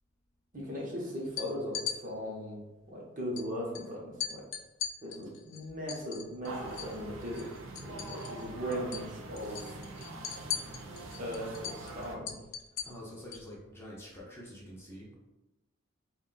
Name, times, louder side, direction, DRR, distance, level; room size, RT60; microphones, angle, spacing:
voice 1, 0.5-2.6 2.9-4.4 5.0-7.5 7.8-9.7 11.2-12.4, equal, 40° right, -3 dB, 0.7 m, -38 dB
sound 1, 1.2-2.0 3.4-3.5 3.7-3.9 4.2-7.0 7.3-8.5 8.7-9.1 9.4-13.5, left 8 dB, 65° left, 0.3 m, -39 dB
sound 2, 6.4-12.2, right 2 dB, 70° right, 0.4 m, -43 dB
voice 2, 12.8-15.2, equal, 10° left, -5 dB, 0.5 m, -47 dB
2.5 x 2.2 x 3.8 m, 1.0 s
head